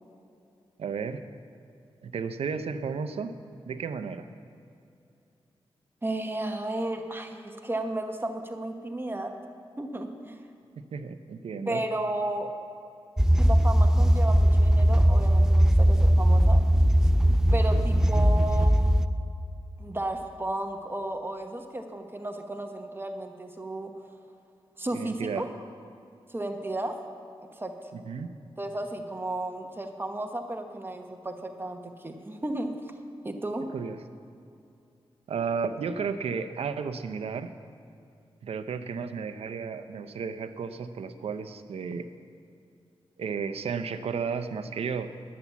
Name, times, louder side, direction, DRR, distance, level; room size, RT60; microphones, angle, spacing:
voice 1, 0.8-1.2 2.0-3.4 3.7-4.3 10.8-11.8 18.0-18.3 24.9-25.5 27.9-28.3 33.7-34.0 35.3-37.5 38.4-42.1 43.2-45.1, right 5 dB, 85° right, 10 dB, 0.6 m, -33 dB
voice 2, 6.0-9.3 9.8-10.4 11.7-12.5 13.4-16.6 17.5-19.0 19.8-23.9 24.8-25.5 26.3-27.0 27.6-27.9 28.6-32.7 33.2-33.7, right 1 dB, 20° right, 5 dB, 1.0 m, -33 dB
sound 1, 13.2-19.1, equal, 5° right, 0.4 m, -20 dB
11.0 x 8.5 x 7.1 m, 2.5 s
cardioid pair, 70°, 10 cm